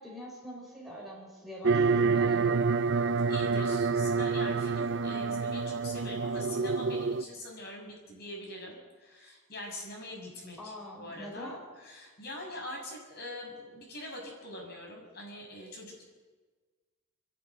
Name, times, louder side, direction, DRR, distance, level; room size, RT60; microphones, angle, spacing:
voice 1, 0.0-2.6 10.6-11.6, equal, ahead, -3 dB, 5.2 m, -44 dB
sound 1, 1.6-7.2, right 4 dB, 55° right, 0.6 m, -27 dB
voice 2, 3.3-16.0, left 1 dB, 50° left, 0 dB, 6.5 m, -43 dB
29.5 x 11.5 x 9.6 m, 1.4 s
head